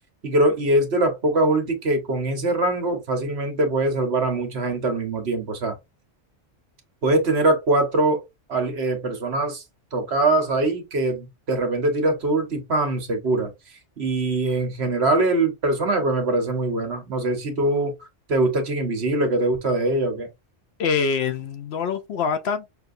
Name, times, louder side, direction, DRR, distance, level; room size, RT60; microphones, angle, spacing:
voice 1, 0.2-5.7 7.0-9.6 9.9-13.5 14.0-17.9 18.3-20.3, right 2 dB, 60° right, 1.4 m, -22 dB
voice 2, 20.8-22.7, left 6 dB, 65° left, 0.8 m, -25 dB
5.7 x 2.5 x 2.6 m
omnidirectional pair, 1.2 m